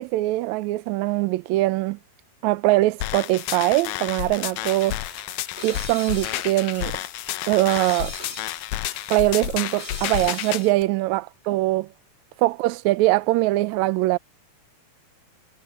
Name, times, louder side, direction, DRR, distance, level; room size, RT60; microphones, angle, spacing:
voice 1, 0.0-2.0 2.4-5.0 5.6-7.0 7.5-8.1 9.1-11.9 12.4-14.2, right 18 dB, 80° right, 1.7 m, -22 dB
sound 1, 3.0-10.6, left 15 dB, 90° left, 2.5 m, -31 dB
sound 2, 4.4-10.8, left 2 dB, 20° left, 4.8 m, -41 dB
omnidirectional pair, 3.9 m